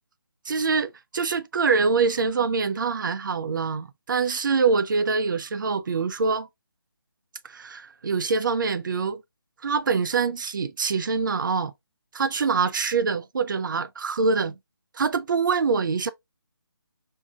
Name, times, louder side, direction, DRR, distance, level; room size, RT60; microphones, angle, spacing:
voice 1, 0.5-6.5 7.4-9.2 9.6-11.7 12.1-14.5 14.9-16.1, right 5 dB, 55° right, 0.5 m, -24 dB
4.7 x 2.7 x 2.3 m
figure-of-eight pair, 160°, 13 cm